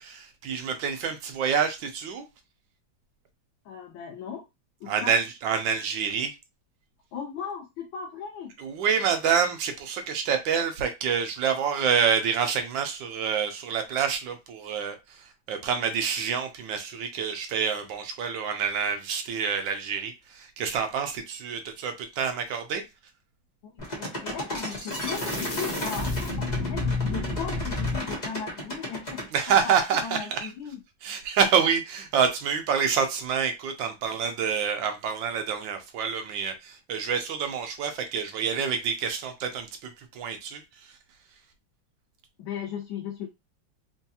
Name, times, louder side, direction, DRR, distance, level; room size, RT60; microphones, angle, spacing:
voice 1, 0.0-2.2 4.9-6.3 8.6-22.8 29.3-30.5 31.0-40.9, right 7 dB, 80° right, 1.4 m, -27 dB
voice 2, 3.6-4.4 4.8-5.1 7.1-8.5 23.6-29.2 29.5-30.8 42.4-43.3, left 7 dB, 85° left, 1.5 m, -37 dB
sound 1, 23.8-29.3, left 2 dB, 30° left, 0.9 m, -30 dB
4.4 x 2.3 x 2.8 m
omnidirectional pair, 2.1 m